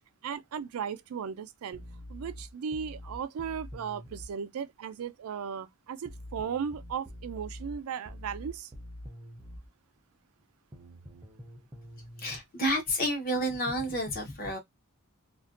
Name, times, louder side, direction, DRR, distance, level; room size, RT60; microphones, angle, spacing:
voice 1, 0.2-1.8 2.1-8.7, right 7 dB, 75° right, 0.4 m, -36 dB
sound 1, 1.7-4.3 6.1-9.7 10.7-12.4, equal, 15° right, 0.4 m, -45 dB
voice 2, 12.2-14.6, equal, 40° left, 0.8 m, -30 dB
2.4 x 2.2 x 2.4 m
head